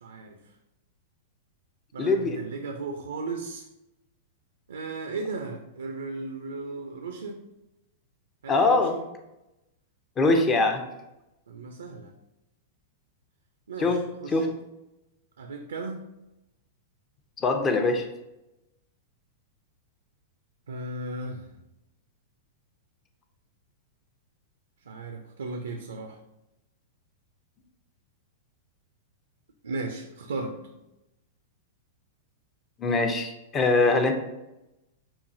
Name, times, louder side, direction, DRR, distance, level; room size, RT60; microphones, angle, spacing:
voice 1, 0.0-0.4 1.9-3.7 4.7-7.4 8.4-9.0 11.5-12.1 13.7-14.5 15.4-16.0 20.7-21.5 24.9-26.2 29.6-30.6, right 3 dB, 80° right, 4 dB, 0.4 m, -36 dB
voice 2, 2.0-2.4 8.5-8.9 10.2-10.9 13.8-14.5 17.4-18.1 32.8-34.1, left 3 dB, 25° left, 5 dB, 0.6 m, -23 dB
5.5 x 2.4 x 2.6 m, 0.93 s
hypercardioid pair, 105°, 0 cm